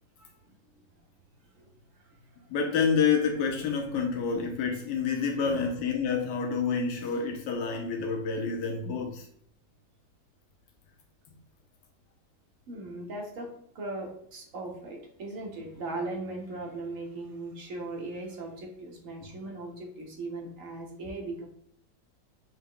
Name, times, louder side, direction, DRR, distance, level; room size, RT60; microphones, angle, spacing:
voice 1, 0.2-0.6 1.6-2.5 12.7-21.5, right 2 dB, 55° right, 1 dB, 1.1 m, -39 dB
voice 2, 2.5-9.3, left 5 dB, 90° left, 1 dB, 1.3 m, -28 dB
5.5 x 2.0 x 3.6 m, 0.64 s
omnidirectional pair, 1.8 m